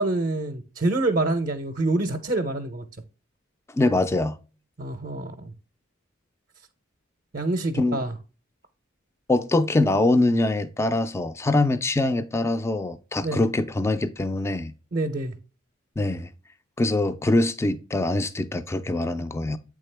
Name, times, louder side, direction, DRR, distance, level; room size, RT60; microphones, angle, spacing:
voice 1, 0.0-2.8 4.8-5.5 7.3-8.1 13.2-13.4 14.9-15.4, right 2 dB, 45° right, 0.5 m, -26 dB
voice 2, 3.7-4.4 7.7-8.0 9.3-14.7 16.0-16.3 16.8-19.6, left 2 dB, 15° left, 0.3 m, -23 dB
8.2 x 3.6 x 3.2 m
head